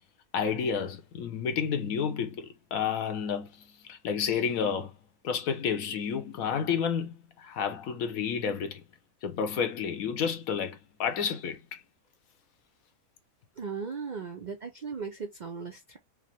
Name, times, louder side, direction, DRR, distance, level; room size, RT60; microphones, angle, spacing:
voice 1, 0.3-5.0 5.2-8.8 9.2-11.8, left 7 dB, 70° left, 1.2 m, -30 dB
voice 2, 13.6-16.0, right 5 dB, 80° right, 0.4 m, -37 dB
5.0 x 2.0 x 2.9 m
omnidirectional pair, 1.6 m